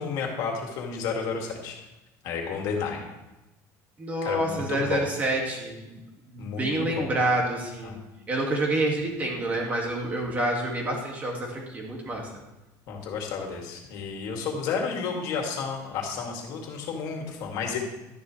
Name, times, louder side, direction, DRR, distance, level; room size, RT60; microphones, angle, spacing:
voice 1, 0.0-1.8 2.2-3.0 4.2-5.1 6.4-7.2 7.8-8.0 12.9-17.8, left 5 dB, 55° left, 1 dB, 2.4 m, -31 dB
voice 2, 4.0-6.0 6.3-7.9 8.3-12.2, right 1 dB, 20° right, 0 dB, 2.2 m, -28 dB
12.5 x 10.5 x 3.3 m, 1.0 s
cardioid pair, 175°, 8 cm